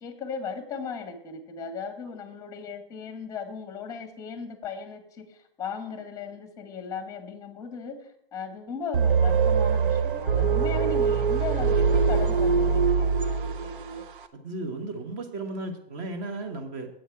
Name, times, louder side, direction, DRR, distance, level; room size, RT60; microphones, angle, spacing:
voice 1, 0.0-14.1, left 5 dB, 10° left, 9 dB, 1.1 m, -37 dB
sound 1, 8.9-13.9, right 5 dB, 55° right, 0.8 m, -23 dB
voice 2, 14.3-16.9, right 2 dB, 30° right, 6 dB, 1.3 m, -35 dB
7.9 x 7.8 x 4.5 m, 0.71 s
figure-of-eight pair, 125°, 30 cm